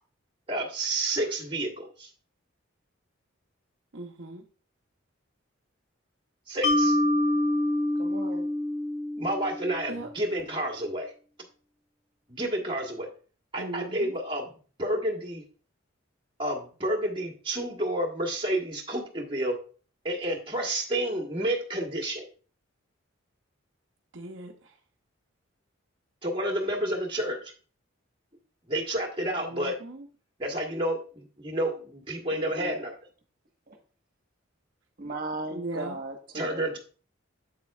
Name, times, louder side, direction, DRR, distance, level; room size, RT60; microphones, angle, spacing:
voice 1, 0.5-2.1 6.5-7.0 9.2-11.1 12.3-13.1 13.5-15.4 16.4-19.6 20.0-22.3 26.2-27.5 28.7-29.7 30.4-32.9 36.3-36.8, right 1 dB, 25° right, 1.5 m, -30 dB
voice 2, 3.9-4.4 9.9-10.1 13.6-14.1 24.1-24.5 29.5-30.1 35.5-36.0, right 2 dB, 65° right, 0.8 m, -38 dB
Mallet percussion, 6.6-9.9, left 1 dB, 90° left, 2.3 m, -26 dB
voice 3, 8.0-8.5 32.3-32.7 33.7-33.8 35.0-36.7, right 2 dB, 45° right, 1.3 m, -37 dB
8.0 x 7.4 x 2.4 m
head